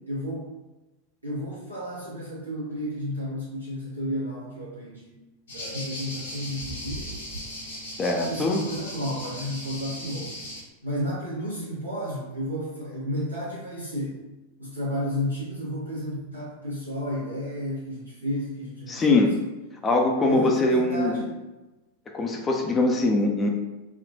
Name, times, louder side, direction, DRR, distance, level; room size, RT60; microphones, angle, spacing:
voice 1, 0.1-0.5 1.2-5.2 5.5-7.2 8.3-10.4 10.8-14.2 14.6-19.3 20.3-21.3, equal, 90° right, -9 dB, 1.0 m, -32 dB
sound 1, 5.5-10.6, equal, 65° left, 1.2 m, -37 dB
voice 2, 8.0-8.6 18.9-19.3 19.8-21.2 22.1-23.5, left 2 dB, 20° left, 2 dB, 0.4 m, -22 dB
3.5 x 2.4 x 2.6 m, 1.1 s
figure-of-eight pair, 90°, 0 cm